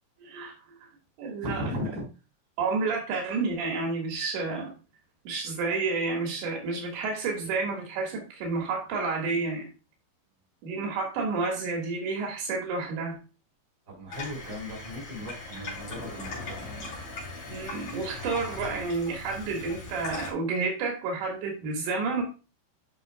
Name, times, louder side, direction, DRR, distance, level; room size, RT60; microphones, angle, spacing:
voice 1, 0.2-0.5 1.2-1.6 2.6-4.7 5.3-9.7 10.6-13.2 17.5-22.2, right 4 dB, 75° right, 0 dB, 3.9 m, -30 dB
voice 2, 1.4-2.0 13.9-16.6, left 1 dB, 25° right, -3 dB, 4.0 m, -36 dB
Water tap faucet / Sink (filling or washing), 14.1-20.3, left 3 dB, 40° left, 4.1 m, -39 dB
10.5 x 5.9 x 2.2 m, 0.32 s
omnidirectional pair, 5.2 m